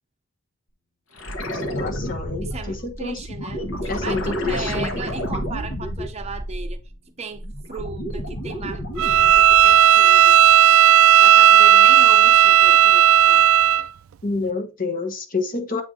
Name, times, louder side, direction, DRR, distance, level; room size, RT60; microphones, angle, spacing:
sound 1, 1.2-7.0 7.3-9.9 12.3-12.4, equal, 70° left, 1.3 m, -30 dB
voice 1, 1.5-3.2 3.9-4.9 14.2-15.8, left 3 dB, 40° left, 1.1 m, -28 dB
voice 2, 2.4-6.8 7.2-10.4 11.2-13.4, right 4 dB, 30° right, 0.6 m, -36 dB
Bowed string instrument, 9.0-13.9, right 10 dB, 80° right, 0.3 m, -13 dB
8.0 x 3.5 x 3.7 m
head